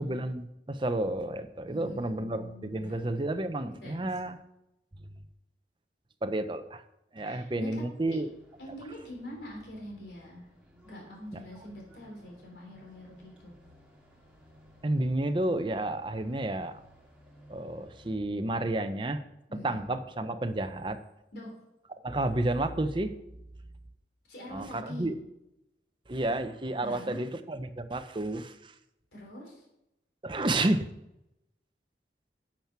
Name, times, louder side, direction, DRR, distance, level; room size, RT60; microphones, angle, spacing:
voice 1, 0.0-4.4 6.2-6.8 7.1-8.3 14.8-16.8 17.5-19.2 19.6-21.0 22.0-23.1 24.5-25.1 26.1-28.7 30.2-30.9, right 1 dB, 30° right, 9 dB, 0.7 m, -31 dB
voice 2, 1.7-3.0 3.8-4.1 7.2-8.2 8.6-10.5 10.8-13.6 19.5-19.8 21.3-21.5 24.3-25.1 26.8-27.2 29.1-29.7, left 1 dB, 70° left, -1 dB, 3.3 m, -44 dB
sound 1, 7.9-18.2, equal, 5° right, 2.5 m, -58 dB
8.9 x 7.4 x 5.8 m, 0.88 s
head